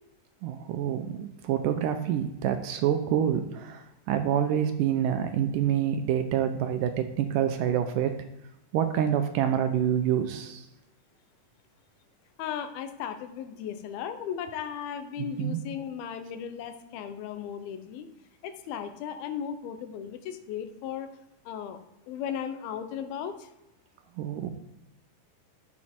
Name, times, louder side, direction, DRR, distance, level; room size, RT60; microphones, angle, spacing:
voice 1, 0.4-8.2 8.7-10.6 15.2-15.6 24.2-24.5, right 9 dB, 80° right, 8 dB, 2.1 m, -27 dB
voice 2, 12.4-18.1 18.4-21.1 21.5-21.8 22.1-23.5, left 8 dB, 85° left, 8 dB, 2.7 m, -36 dB
11.0 x 7.2 x 4.4 m, 0.90 s
omnidirectional pair, 4.3 m